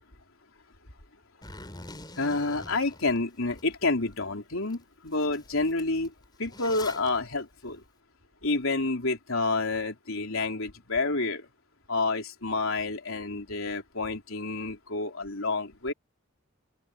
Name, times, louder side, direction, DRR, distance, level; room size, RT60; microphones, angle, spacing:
Zipper (clothing), 1.4-3.6 4.1-4.2 4.7-4.8 5.1-7.1, left 2 dB, 20° left, 4.0 m, -45 dB
voice 1, 2.2-6.1 6.4-7.8 8.4-11.5 11.9-15.9, left 3 dB, 75° left, 3.9 m, -29 dB
open air
head